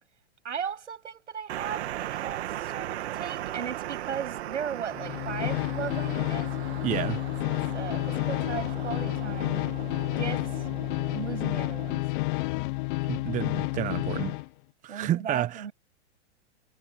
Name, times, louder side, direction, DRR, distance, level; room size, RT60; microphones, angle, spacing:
voice 1, 0.4-6.6 7.5-9.6 10.2-10.7 11.1-12.0 14.9-15.7, right 7 dB, 90° right, 7.7 m, -37 dB
sound 1, 1.5-12.0, right 13 dB, 65° right, 2.4 m, -38 dB
sound 2, 4.9-14.5, left 22 dB, 45° left, 1.3 m, -30 dB
voice 2, 6.8-7.2 13.1-14.4 14.8-15.7, right 12 dB, 20° right, 1.3 m, -30 dB
hypercardioid pair, 130°, 35 cm